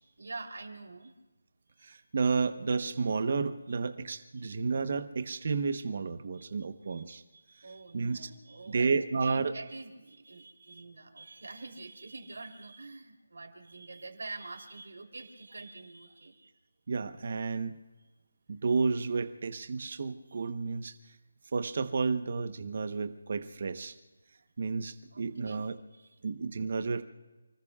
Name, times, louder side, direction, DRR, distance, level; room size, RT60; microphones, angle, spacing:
voice 1, 0.0-1.1 1.7-2.1 4.4-4.5 6.4-7.0 7.3-16.5 18.0-18.1 20.3-20.4 25.1-25.6 25.9-26.2, right 3 dB, 65° right, 3 dB, 3.4 m, -46 dB
voice 2, 1.8-7.2 7.9-8.3 8.7-9.5 16.9-17.8 18.5-21.0 21.5-23.9 24.6-25.8 26.2-27.0, right 4 dB, 35° right, 10 dB, 1.0 m, -31 dB
29.5 x 20.0 x 2.4 m, 1.2 s
figure-of-eight pair, 180°, 0 cm